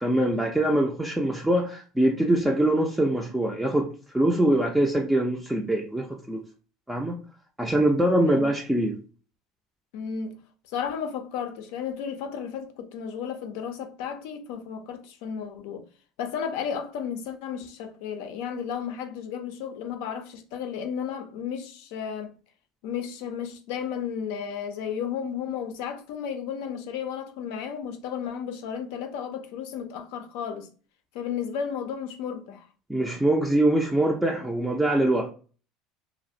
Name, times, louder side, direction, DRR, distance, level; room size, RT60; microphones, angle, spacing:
voice 1, 0.0-3.9 4.1-6.4 6.9-7.2 7.6-9.0 32.9-35.3, right 1 dB, 5° right, 0.4 m, -23 dB
voice 2, 9.9-10.4 10.7-15.8 16.2-22.3 22.8-30.7 31.1-32.7, left 7 dB, 75° left, 0.4 m, -33 dB
2.3 x 2.0 x 2.6 m
hypercardioid pair, 90°, 0 cm